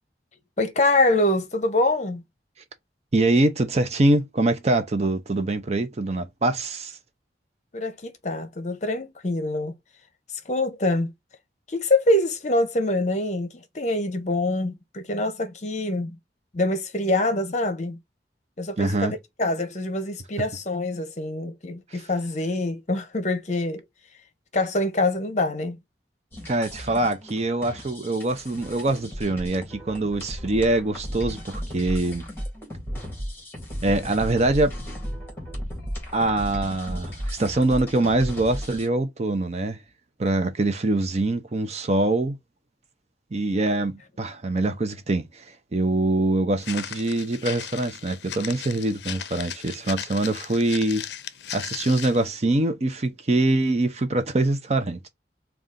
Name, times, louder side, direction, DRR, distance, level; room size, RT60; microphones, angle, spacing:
voice 1, 0.6-2.2 7.7-9.7 10.5-11.1 11.7-16.2 16.5-18.0 18.6-23.8 24.5-25.8, left 2 dB, 40° left, 0.8 m, -25 dB
voice 2, 3.1-7.0 18.8-19.1 26.5-32.2 33.8-34.7 36.1-39.8 40.2-42.4 43.3-45.4 45.7-51.0 51.5-55.1, right 2 dB, 40° right, 0.6 m, -24 dB
sound 1, 26.3-38.9, equal, 15° left, 1.7 m, -35 dB
Walk footsteps, 46.6-52.3, left 10 dB, 75° left, 0.5 m, -37 dB
3.8 x 2.4 x 3.7 m
head